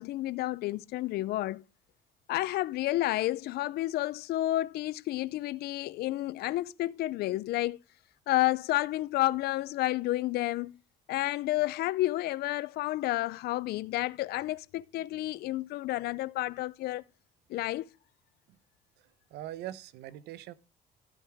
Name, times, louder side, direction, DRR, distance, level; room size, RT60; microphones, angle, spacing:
voice 1, 0.0-1.6 2.3-7.8 8.3-10.8 11.1-17.0 17.5-17.9, left 16 dB, 70° left, 0.5 m, -30 dB
voice 2, 19.0-20.5, right 13 dB, 85° right, 0.9 m, -42 dB
12.5 x 8.5 x 3.4 m
cardioid pair, 110°, 17 cm